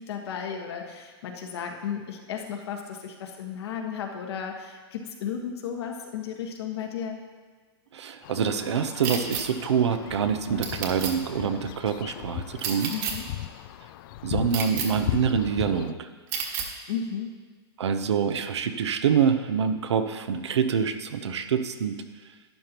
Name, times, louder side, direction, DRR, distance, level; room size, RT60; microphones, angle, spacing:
voice 1, 0.0-7.2 12.9-13.3 16.9-17.3, left 7 dB, 70° left, 2 dB, 1.5 m, -34 dB
voice 2, 7.9-12.9 14.2-16.1 17.8-22.0, right 7 dB, 90° right, 8 dB, 0.8 m, -26 dB
sound 1, 8.2-15.9, left 14 dB, 50° left, 0.4 m, -37 dB
sound 2, 9.0-9.4 10.6-11.1 12.6-13.1 14.5-14.9 16.3-16.7, right 7 dB, 40° right, 1.4 m, -30 dB
12.0 x 9.6 x 3.0 m, 1.4 s
hypercardioid pair, 140°, 14 cm